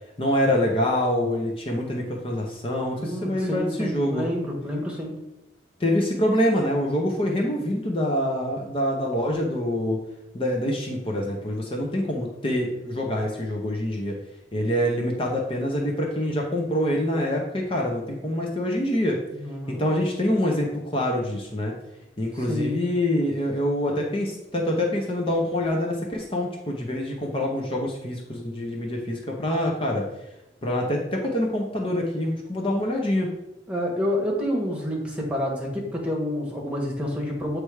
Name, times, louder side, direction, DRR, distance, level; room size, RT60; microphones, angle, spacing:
voice 1, 0.2-4.3 5.8-10.0 10.3-14.2 14.5-19.2 19.7-21.7 22.2-30.1 30.6-33.3, left 1 dB, 30° left, 0 dB, 0.8 m, -25 dB
voice 2, 3.0-5.2 19.3-19.9 22.5-22.8 33.7-37.6, left 1 dB, 5° right, -2 dB, 1.3 m, -28 dB
7.5 x 3.3 x 4.8 m, 0.93 s
head